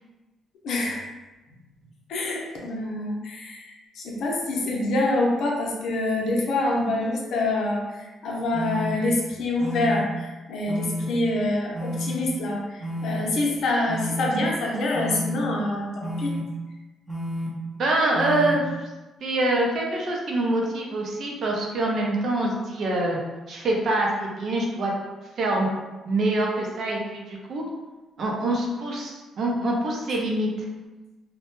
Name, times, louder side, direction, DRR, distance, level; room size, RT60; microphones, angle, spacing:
voice 1, 0.6-1.1 2.1-16.3, left 2 dB, 70° left, -2 dB, 0.6 m, -26 dB
sound 1, 8.5-8.9 9.6-10.0 10.7-11.1 11.7-12.1 12.8-13.2 13.9-14.3 14.9-15.3 16.0-16.4 17.1-17.5 18.1-18.5, equal, 10° right, 0.7 m, -30 dB
voice 2, 17.8-18.6 19.2-23.2 23.5-24.9 25.4-25.7 26.0-27.6 28.2-30.5, right 1 dB, 60° right, -2 dB, 0.6 m, -25 dB
2.1 x 2.0 x 3.0 m, 1.1 s
cardioid pair, 90°, 0 cm